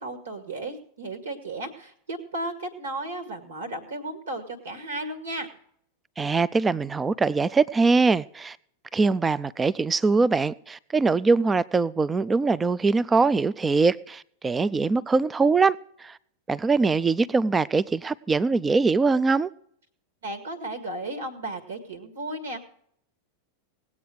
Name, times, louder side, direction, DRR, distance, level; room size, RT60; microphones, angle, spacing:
voice 1, 0.0-5.5 20.2-22.7, right 2 dB, 70° right, 2.1 m, -34 dB
voice 2, 6.2-8.6 8.9-16.2 16.5-19.5, right 4 dB, 15° right, 0.5 m, -22 dB
18.5 x 8.5 x 4.8 m
figure-of-eight pair, 90°, 0 cm